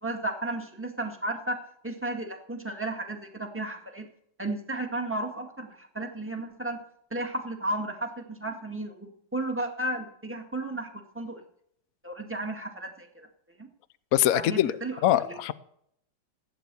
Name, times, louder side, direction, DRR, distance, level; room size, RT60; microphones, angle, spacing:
voice 1, 0.0-1.6 1.8-4.1 4.4-6.8 7.1-10.9 11.1-11.4 12.0-13.3 13.6-13.7 14.3-15.0 15.3-15.4, right 2 dB, 5° right, 3 dB, 1.9 m, -33 dB
voice 2, 14.1-14.8 15.0-15.5, left 12 dB, 65° left, 15 dB, 0.9 m, -23 dB
16.0 x 9.4 x 6.9 m, 0.72 s
omnidirectional pair, 2.0 m